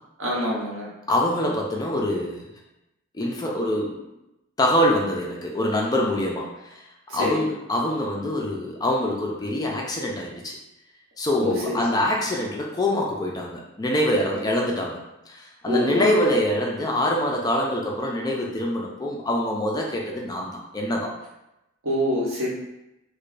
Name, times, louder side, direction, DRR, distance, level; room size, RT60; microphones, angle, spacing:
voice 1, 0.2-0.9 7.1-7.4 11.4-11.8 15.7-16.2 21.8-22.5, left 1 dB, 70° right, -4 dB, 1.0 m, -25 dB
voice 2, 1.1-2.4 3.1-3.9 4.6-6.8 7.1-10.6 11.2-15.0 15.3-21.1, left 1 dB, 20° left, -2 dB, 0.4 m, -25 dB
4.8 x 2.2 x 2.5 m, 0.92 s
head